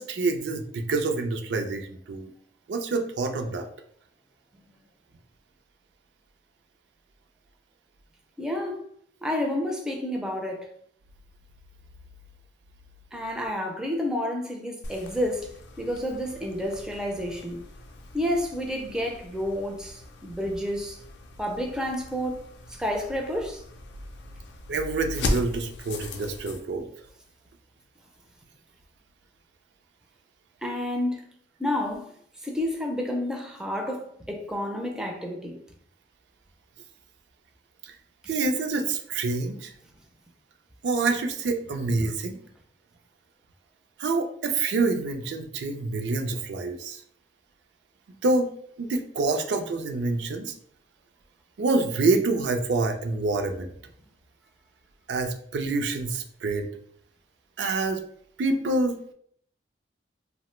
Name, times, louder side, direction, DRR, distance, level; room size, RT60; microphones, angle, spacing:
voice 1, 0.0-2.3 2.7-3.7 24.7-26.9 37.8-37.9 38.3-39.7 40.8-42.4 44.0-47.0 48.2-48.5 48.8-50.5 51.6-53.7 55.1-56.7 57.6-58.0 58.4-59.1, right 3 dB, 70° right, 0.4 m, -27 dB
voice 2, 8.4-8.9 9.2-10.7 13.1-17.6 18.1-21.0 21.4-23.6 30.6-31.3 31.6-32.1 32.4-35.6, left 1 dB, 5° right, 0.4 m, -30 dB
sound 1, 14.8-26.6, left 2 dB, 85° left, 0.4 m, -38 dB
2.8 x 2.0 x 3.0 m
head